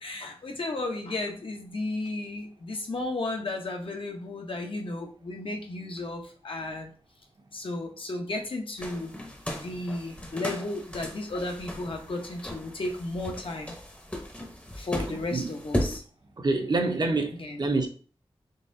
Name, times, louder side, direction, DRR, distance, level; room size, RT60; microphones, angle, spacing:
voice 1, 0.0-6.9 7.5-9.1 9.5-13.7 14.7-16.0 17.3-17.6, left 2 dB, 60° left, 0.8 m, -34 dB
sound 1, 8.8-16.0, left 1 dB, 15° left, 0.7 m, -36 dB
voice 2, 16.4-17.9, right 3 dB, 45° right, 0.6 m, -26 dB
4.0 x 3.6 x 2.6 m
wide cardioid pair, 90°, 10 cm